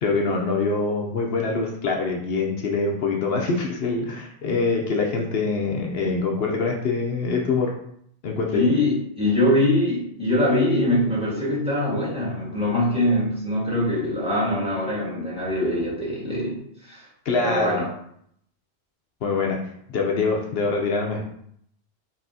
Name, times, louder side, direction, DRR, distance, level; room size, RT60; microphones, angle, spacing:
voice 1, 0.0-7.7 8.2-8.7 17.3-17.8 19.2-19.6 19.9-21.2, left 4 dB, 70° left, 0 dB, 0.9 m, -24 dB
voice 2, 8.5-17.0 17.4-17.9, left 1 dB, 5° right, -8 dB, 1.6 m, -23 dB
5.5 x 2.8 x 2.7 m, 0.70 s
omnidirectional pair, 1.0 m